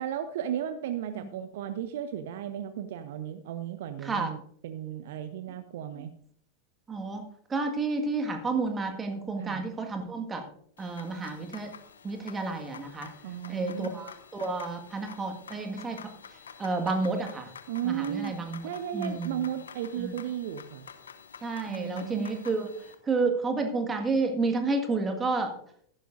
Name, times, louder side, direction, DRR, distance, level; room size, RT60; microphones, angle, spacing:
voice 1, 0.0-6.1 9.4-9.6 13.2-13.9 17.7-18.4 18.6-20.9 21.6-22.3, right 10 dB, 55° right, 10 dB, 0.6 m, -35 dB
voice 2, 6.9-10.4 10.8-11.7 12.0-13.1 13.5-16.0 16.6-17.5 17.8-19.4 20.0-20.1 21.4-22.7 23.0-25.5, right 3 dB, 15° right, 4 dB, 1.7 m, -30 dB
sound 1, 10.8-22.9, left 7 dB, 70° left, 1.1 m, -49 dB
14.5 x 11.0 x 2.6 m, 0.66 s
figure-of-eight pair, 90°, 0 cm